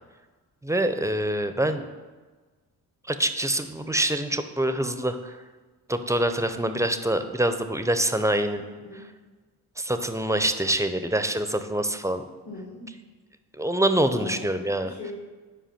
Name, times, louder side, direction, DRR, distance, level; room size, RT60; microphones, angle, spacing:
voice 1, 0.6-1.9 3.1-5.4 5.9-8.6 9.8-12.2 13.5-14.9, right 1 dB, 5° right, 9 dB, 0.5 m, -25 dB
voice 2, 8.6-9.1 12.4-12.9 14.1-14.5 14.8-15.1, left 3 dB, 75° left, -5 dB, 1.8 m, -40 dB
5.3 x 4.8 x 5.7 m, 1.3 s
hypercardioid pair, 50°, 44 cm